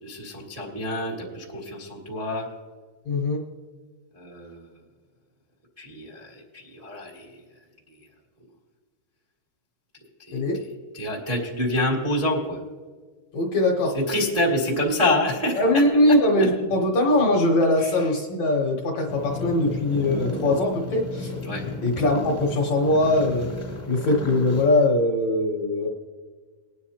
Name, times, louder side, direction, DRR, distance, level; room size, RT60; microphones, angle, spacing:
voice 1, 0.0-2.5 4.1-4.6 5.8-7.4 10.3-12.6 13.8-15.8 17.8-18.2 21.4-21.6, left 1 dB, 70° right, -3 dB, 0.3 m, -27 dB
voice 2, 3.1-3.4 10.3-10.6 13.3-14.0 14.7-14.8 15.6-21.3 21.8-23.5 23.9-25.9, left 1 dB, 65° left, 0 dB, 1.8 m, -21 dB
sound 1, 19.1-24.7, left 2 dB, 35° left, 0.6 m, -33 dB
20.5 x 9.6 x 2.8 m, 1.5 s
omnidirectional pair, 4.5 m